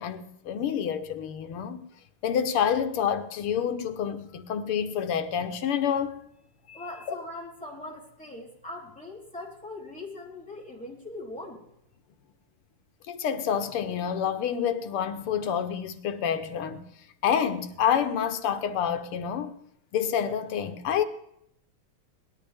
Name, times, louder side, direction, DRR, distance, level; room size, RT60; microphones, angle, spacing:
voice 1, 0.0-1.8 2.2-6.2 6.7-6.8 13.1-16.8 17.2-19.5 19.9-21.0, left 8 dB, 80° left, 1.9 m, -28 dB
voice 2, 6.7-11.6, left 2 dB, 5° left, 3.8 m, -41 dB
18.5 x 12.0 x 3.5 m
omnidirectional pair, 2.4 m